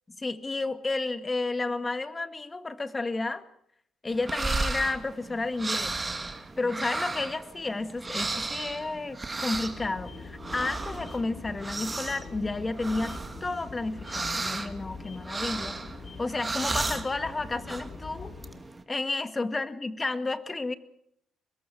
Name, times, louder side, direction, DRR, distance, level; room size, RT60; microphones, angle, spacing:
voice 1, 0.2-3.4 4.0-6.0 6.6-15.8 16.2-18.3 18.9-20.7, left 3 dB, 25° left, 12 dB, 1.9 m, -31 dB
sound 1, 4.1-18.8, right 3 dB, 20° right, 2.4 m, -35 dB
sound 2, 9.5-18.6, left 4 dB, 45° left, 3.2 m, -44 dB
24.5 x 21.0 x 6.3 m, 0.70 s
cardioid pair, 90°, 0 cm